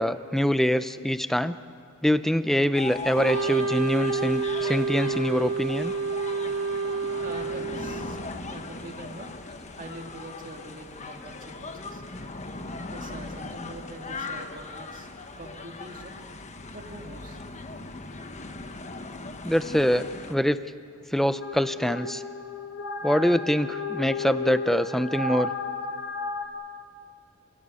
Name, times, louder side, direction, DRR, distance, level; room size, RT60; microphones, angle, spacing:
voice 1, 0.0-1.6 2.0-5.9 19.4-20.6 21.1-22.2 23.0-25.5, equal, ahead, 12 dB, 0.6 m, -24 dB
sound 1, 2.7-20.3, left 3 dB, 35° left, 1.2 m, -39 dB
Wind instrument woodwind instrument, 3.1-8.3, right 4 dB, 90° right, 1.0 m, -29 dB
voice 2, 7.2-8.2 8.5-9.3 9.8-12.0 12.9-15.1 15.4-16.2 16.7-17.4, right 1 dB, 40° right, 2 dB, 2.3 m, -43 dB
sound 2, 21.4-26.5, left 4 dB, 75° left, 2.2 m, -33 dB
28.5 x 17.0 x 8.3 m, 2.4 s
head